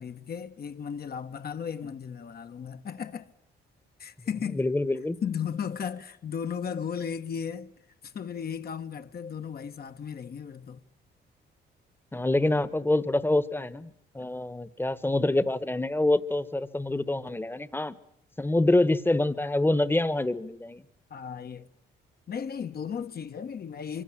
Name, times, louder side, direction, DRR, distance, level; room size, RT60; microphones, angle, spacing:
voice 1, 0.0-3.3 4.0-4.6 5.2-7.7 8.0-10.8 21.1-21.7 22.3-24.0, left 7 dB, 50° left, 1.5 m, -35 dB
voice 2, 4.5-5.2 12.1-13.9 14.1-17.9 18.4-20.8, left 2 dB, 10° left, 1.3 m, -26 dB
25.5 x 24.0 x 7.5 m
cardioid pair, 90°, 20 cm